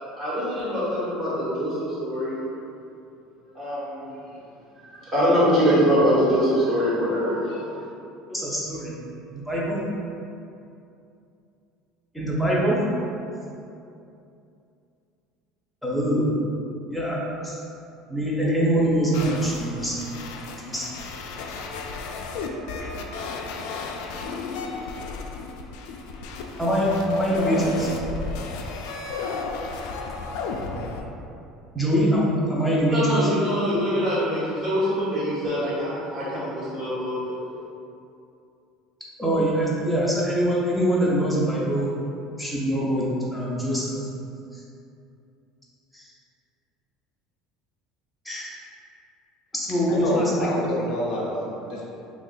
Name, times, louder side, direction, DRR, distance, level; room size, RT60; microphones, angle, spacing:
voice 1, 0.1-2.4 3.5-4.1 4.8-7.8 32.9-37.3, equal, 30° right, -9 dB, 1.4 m, -24 dB
voice 2, 8.3-8.9 9.3-9.8 12.1-12.8 15.8-16.3 16.9-17.6 18.1-20.2 20.6-21.1 26.6-27.9 31.7-33.0 39.2-41.9 42.4-43.9 44.5-44.6 45.9-46.1 48.2-48.6 49.5-50.3, right 1 dB, ahead, -7 dB, 0.7 m, -24 dB
sound 1, 19.1-31.0, left 4 dB, 75° left, 0.3 m, -33 dB
voice 3, 49.9-51.9, left 1 dB, 50° left, -5 dB, 0.7 m, -28 dB
3.1 x 2.4 x 3.8 m, 2.6 s
cardioid pair, 140°, 0 cm